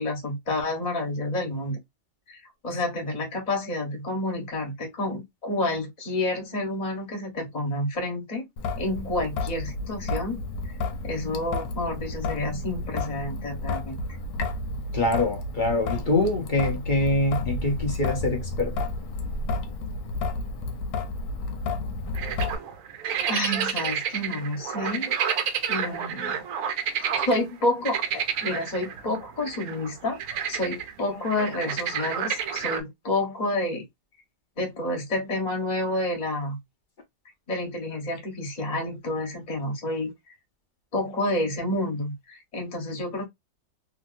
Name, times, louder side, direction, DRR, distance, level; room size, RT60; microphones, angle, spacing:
voice 1, 0.0-1.8 2.3-2.4 2.6-8.5 8.8-10.4 11.0-14.0 23.3-25.1 25.7-26.4 27.1-33.8 34.6-36.6 37.5-40.1 40.9-43.3, left 1 dB, 30° left, 1.1 m, -29 dB
Traffic noise roadway noise / Drip / Trickle dribble, 8.6-22.6, left 3 dB, 90° left, 1.3 m, -31 dB
voice 2, 14.9-18.7, left 2 dB, 50° left, 0.6 m, -24 dB
sound 1, 22.1-27.4 27.8-32.8, right 8 dB, 65° right, 0.8 m, -30 dB
3.0 x 2.7 x 2.5 m
omnidirectional pair, 1.8 m